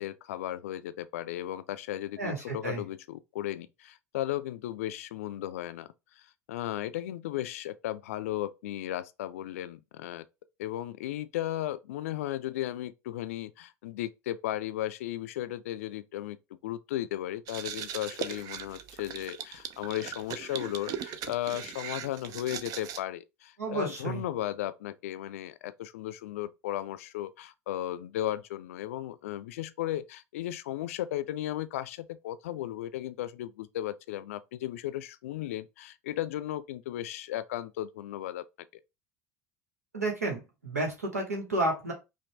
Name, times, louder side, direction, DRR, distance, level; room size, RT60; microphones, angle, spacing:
voice 1, 0.0-5.9 6.5-10.2 10.6-16.4 16.6-38.5, left 13 dB, 70° left, 0.3 m, -35 dB
voice 2, 2.2-2.8 23.6-24.2 39.9-41.9, right 2 dB, 85° right, 1.3 m, -31 dB
sound 1, 17.5-23.0, right 8 dB, 50° right, 0.5 m, -39 dB
5.2 x 2.3 x 3.2 m
figure-of-eight pair, 65°, 8 cm